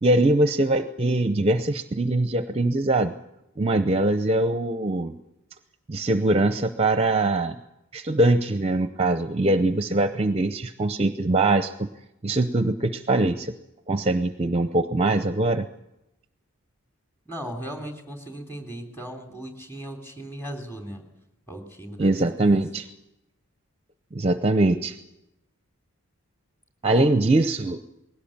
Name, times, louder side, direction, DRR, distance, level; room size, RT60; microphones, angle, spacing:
voice 1, 0.0-3.1 3.6-5.1 5.9-7.6 7.9-11.9 12.2-13.5 13.9-15.6 22.0-22.8 24.1-25.0 26.8-27.8, right 2 dB, 25° right, 10 dB, 0.7 m, -22 dB
voice 2, 17.2-21.0 21.5-22.6 26.8-27.2, equal, 10° left, 4 dB, 3.4 m, -37 dB
20.5 x 17.0 x 8.8 m, 0.88 s
head